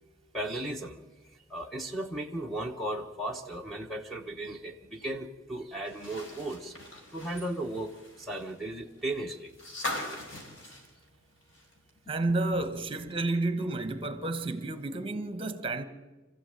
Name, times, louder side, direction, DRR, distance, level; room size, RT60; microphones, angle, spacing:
voice 1, 0.3-6.8 7.1-9.5, right 1 dB, ahead, 1.1 m, -36 dB
sound 1, 5.8-11.9 12.2-12.3 13.7-13.8, left 2 dB, 65° left, 4.7 m, -41 dB
voice 2, 12.1-15.8, right 2 dB, 25° right, 1.4 m, -31 dB
25.5 x 15.0 x 9.1 m
head